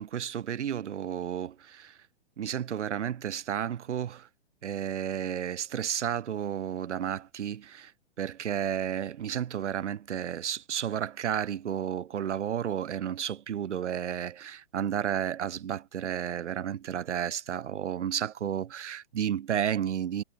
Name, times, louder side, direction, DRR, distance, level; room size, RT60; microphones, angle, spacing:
voice 1, 0.0-2.0 2.4-4.3 4.6-7.9 8.2-20.2, right 9 dB, 85° right, 1.2 m, -32 dB
hypercardioid pair, 175°, 34 cm